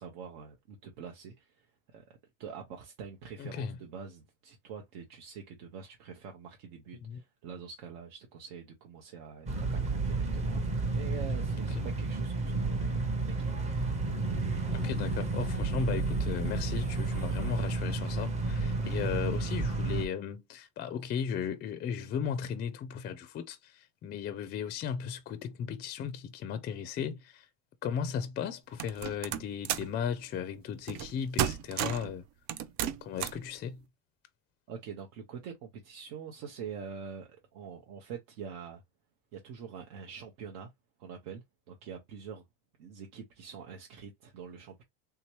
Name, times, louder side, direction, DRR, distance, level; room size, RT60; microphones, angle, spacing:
voice 1, 0.0-13.7 34.7-38.8 39.3-40.7 41.0-42.4 42.8-44.8, right 6 dB, 75° right, 0.9 m, -45 dB
voice 2, 3.4-3.8 7.0-7.2 11.7-11.9 14.6-27.5 27.8-32.2 33.0-33.8, left 7 dB, 30° left, 0.4 m, -36 dB
sound 1, 9.5-20.1, right 3 dB, 20° right, 0.7 m, -31 dB
sound 2, 28.8-30.0 30.9-31.1 31.4-32.1 32.5-33.5, right 10 dB, 55° right, 0.5 m, -32 dB
3.5 x 2.9 x 3.0 m
cardioid pair, 140°, 33 cm